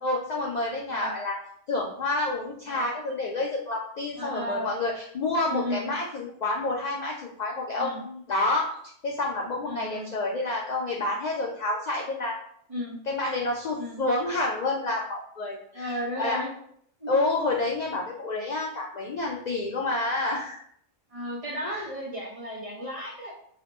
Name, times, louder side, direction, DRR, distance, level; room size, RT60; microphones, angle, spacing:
voice 1, 0.0-1.4 1.7-8.7 9.0-12.4 13.1-16.4 17.1-20.6 21.6-21.8, left 2 dB, 80° left, -2 dB, 0.4 m, -29 dB
voice 2, 4.2-4.7 5.5-5.9 7.8-8.0 9.6-10.1 12.7-12.9 13.8-14.0 15.7-16.5 17.0-17.2 21.1-23.3, equal, 35° right, -4 dB, 0.6 m, -34 dB
2.9 x 2.1 x 4.1 m, 0.66 s
omnidirectional pair, 1.3 m